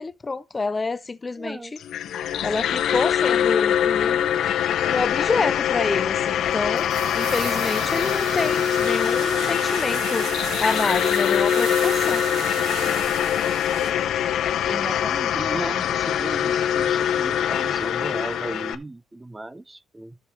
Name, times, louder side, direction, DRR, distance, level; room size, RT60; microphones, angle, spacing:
voice 1, 0.0-1.6 2.4-4.4 4.8-6.9 7.1-10.3 10.6-12.2, left 3 dB, 25° left, 0.4 m, -28 dB
voice 2, 1.4-1.7 14.6-20.2, right 2 dB, 15° right, 0.6 m, -35 dB
sound 1, 1.8-18.8, left 9 dB, 75° left, 0.8 m, -23 dB
sound 2, 6.8-14.1 14.3-14.4, right 8 dB, 70° right, 1.0 m, -34 dB
13.5 x 6.6 x 3.2 m
cardioid pair, 90°, 0 cm